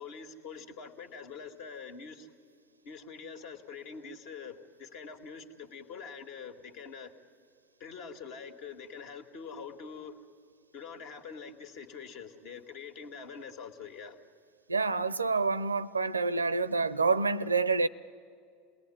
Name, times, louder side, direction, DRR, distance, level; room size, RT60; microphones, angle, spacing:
voice 1, 0.0-2.3 2.8-7.1 7.8-10.2 10.7-14.2, left 5 dB, 60° left, 2.1 m, -45 dB
voice 2, 14.7-17.9, right 4 dB, 90° right, 0.6 m, -27 dB
28.0 x 19.5 x 9.9 m
figure-of-eight pair, 80°, 0 cm